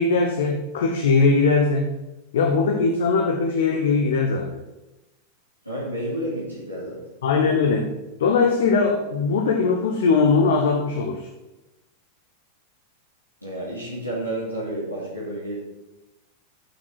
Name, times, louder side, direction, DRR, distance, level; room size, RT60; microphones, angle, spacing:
voice 1, 0.0-1.9 2.3-4.5 7.2-7.9 8.2-11.3, left 4 dB, 60° left, 3 dB, 1.0 m, -20 dB
voice 2, 5.6-7.0 13.4-15.6, right 1 dB, 90° left, -8 dB, 2.7 m, -30 dB
8.3 x 6.2 x 6.2 m, 1.0 s
figure-of-eight pair, 90°, 0 cm